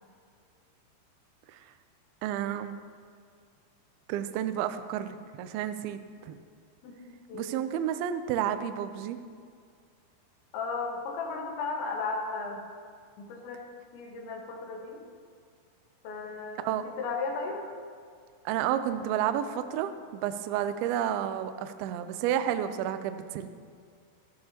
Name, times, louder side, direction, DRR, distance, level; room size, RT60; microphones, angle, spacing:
voice 1, 2.2-2.8 4.1-6.4 7.3-9.2 16.6-16.8 18.5-23.5, right 10 dB, 85° right, 10 dB, 2.2 m, -31 dB
voice 2, 6.8-7.6 10.5-12.6 13.2-13.6 13.9-15.0 16.0-17.7, left 4 dB, 90° left, 0 dB, 3.8 m, -35 dB
14.0 x 13.0 x 2.9 m, 2.2 s
omnidirectional pair, 5.0 m